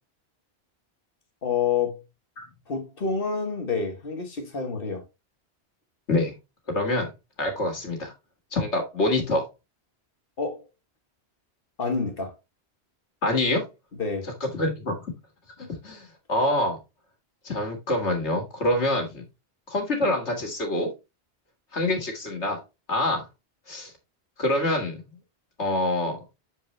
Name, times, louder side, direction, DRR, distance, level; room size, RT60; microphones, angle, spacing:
voice 1, 1.4-2.0 2.7-5.1 10.4-10.7 11.8-12.3 14.0-14.3, left 5 dB, 55° left, 1.6 m, -28 dB
voice 2, 6.7-7.1 7.4-8.1 8.5-9.4 13.2-13.6 14.4-14.9 15.8-16.8 17.4-19.2 19.7-20.9 21.7-22.6 22.9-23.3 23.7-23.9 24.4-25.1 25.6-26.2, left 1 dB, 85° left, 2.3 m, -25 dB
7.1 x 4.8 x 3.2 m
omnidirectional pair, 1.1 m